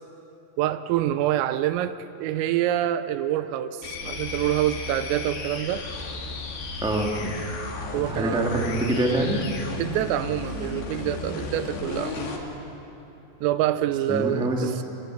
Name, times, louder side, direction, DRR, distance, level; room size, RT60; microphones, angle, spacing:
voice 1, 0.6-5.8 7.9-8.5 9.8-12.3 13.4-14.8, right 12 dB, 80° right, 11 dB, 3.5 m, -26 dB
sound 1, 3.8-12.5, left 3 dB, 50° left, 4.0 m, -34 dB
voice 2, 6.8-7.3 7.9-9.4 14.1-14.8, right 1 dB, 5° right, 0 dB, 0.5 m, -25 dB
29.5 x 24.0 x 8.0 m, 2.9 s
omnidirectional pair, 6.0 m